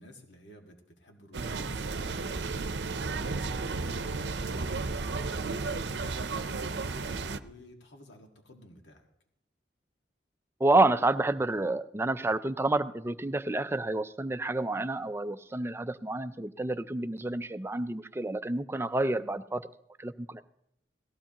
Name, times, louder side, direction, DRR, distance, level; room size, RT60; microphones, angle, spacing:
voice 1, 0.0-9.1, equal, 85° left, 2 dB, 1.8 m, -53 dB
sound 1, 1.3-7.4, right 3 dB, 70° right, 0.6 m, -33 dB
voice 2, 10.6-19.6 20.0-20.4, right 2 dB, 15° right, 12 dB, 0.4 m, -29 dB
18.5 x 15.0 x 2.9 m, 0.76 s
head